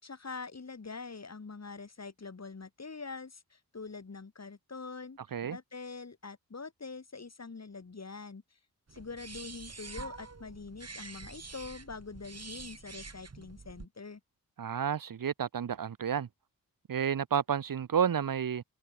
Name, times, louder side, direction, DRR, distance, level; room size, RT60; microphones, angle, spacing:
voice 1, 0.0-5.2 5.5-8.4 8.9-14.2, left 4 dB, 45° left, 5.1 m, -44 dB
sound 1, 8.9-13.9, right 4 dB, 45° right, 4.9 m, -46 dB
voice 2, 14.6-16.3 16.9-18.6, right 8 dB, 65° right, 1.4 m, -31 dB
cardioid pair, 45°, 36 cm